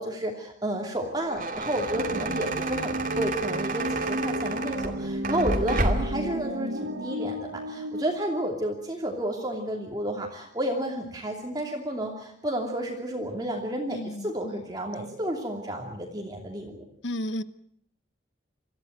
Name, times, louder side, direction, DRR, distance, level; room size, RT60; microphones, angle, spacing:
voice 1, 0.0-16.8, right 1 dB, 20° right, 1 dB, 2.8 m, -31 dB
sound 1, 1.0-6.2, right 2 dB, 45° right, 2.5 m, -30 dB
sound 2, 1.9-8.0, right 1 dB, 85° right, 1.5 m, -32 dB
voice 2, 13.9-14.6 17.0-17.4, left 1 dB, 80° left, 14 dB, 1.2 m, -33 dB
25.5 x 15.0 x 9.1 m, 0.69 s
head